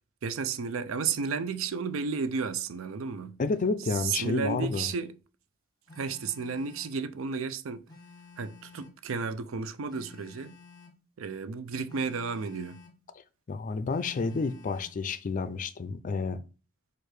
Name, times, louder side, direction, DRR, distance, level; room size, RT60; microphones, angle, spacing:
voice 1, 0.2-3.4 3.9-5.1 6.0-7.8 8.4-10.6 11.2-12.8, right 5 dB, 90° right, 0.5 m, -33 dB
voice 2, 3.4-4.9 13.5-16.4, left 4 dB, 40° left, 0.4 m, -30 dB
Telephone, 5.9-7.0 7.9-9.0 9.9-11.0 11.9-13.0 13.9-15.0, left 4 dB, 20° left, 1.0 m, -52 dB
4.6 x 2.5 x 4.7 m
head